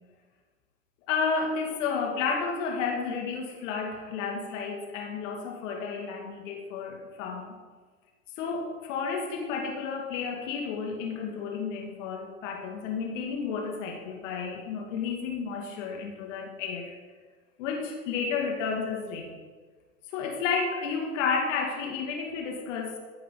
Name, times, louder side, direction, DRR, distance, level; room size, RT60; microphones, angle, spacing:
voice 1, 1.1-7.5 8.4-17.0 17.6-19.3 20.1-23.0, left 5 dB, 60° left, 1 dB, 2.5 m, -31 dB
14.5 x 10.5 x 4.0 m, 1.4 s
hypercardioid pair, 90°, 43 cm